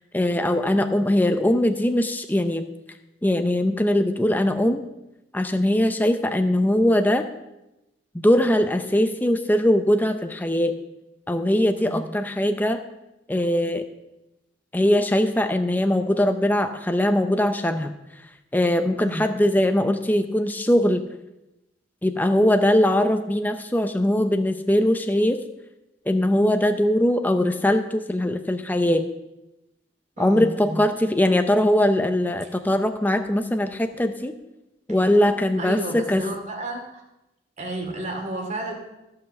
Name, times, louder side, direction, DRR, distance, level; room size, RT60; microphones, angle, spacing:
voice 1, 0.1-2.7 3.2-4.8 5.3-7.2 8.1-10.8 11.3-12.8 13.3-13.8 14.7-17.9 18.5-21.0 22.0-25.4 26.1-29.1 30.2-34.3 34.9-36.2, left 1 dB, 10° left, 7 dB, 0.5 m, -21 dB
voice 2, 11.8-12.1 19.0-19.3 30.2-30.8 34.9-35.0 35.6-37.0 37.6-38.7, right 2 dB, 40° right, 2 dB, 2.5 m, -32 dB
15.0 x 5.8 x 7.0 m, 0.94 s
head